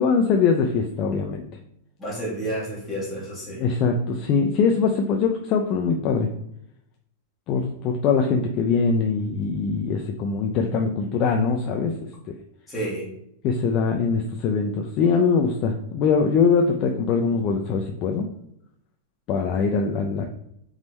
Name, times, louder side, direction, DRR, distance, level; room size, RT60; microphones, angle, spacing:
voice 1, 0.0-1.5 3.6-6.3 7.5-11.9 13.4-18.3 19.3-20.2, left 5 dB, 30° left, 2 dB, 0.4 m, -22 dB
voice 2, 2.0-3.6 12.7-13.1, right 1 dB, 10° left, -7 dB, 1.5 m, -30 dB
4.0 x 3.6 x 3.1 m, 0.75 s
supercardioid pair, 165°, 0 cm